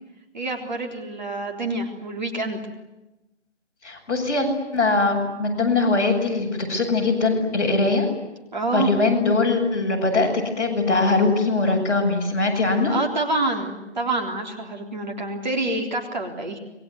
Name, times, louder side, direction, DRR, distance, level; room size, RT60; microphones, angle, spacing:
voice 1, 0.3-2.6 8.5-8.9 12.9-16.6, right 2 dB, 40° right, 2 dB, 3.7 m, -27 dB
voice 2, 3.8-8.1 8.7-10.3 10.6-13.0, left 3 dB, 15° left, -6 dB, 6.9 m, -21 dB
28.0 x 22.5 x 9.6 m, 0.99 s
figure-of-eight pair, 170°, 35 cm